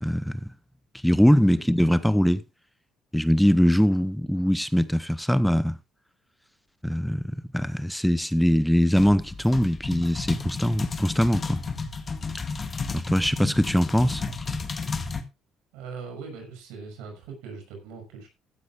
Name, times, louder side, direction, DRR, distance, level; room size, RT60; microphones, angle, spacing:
voice 1, 0.0-0.5 1.0-2.4 3.1-5.8 6.8-11.6 12.9-14.2, equal, ahead, 0.8 m, -22 dB
sound 1, 9.0-15.2, left 4 dB, 35° left, 1.8 m, -32 dB
voice 2, 15.7-18.3, right 5 dB, 85° right, 6.0 m, -40 dB
14.5 x 12.0 x 2.5 m
supercardioid pair, 80°, 0 cm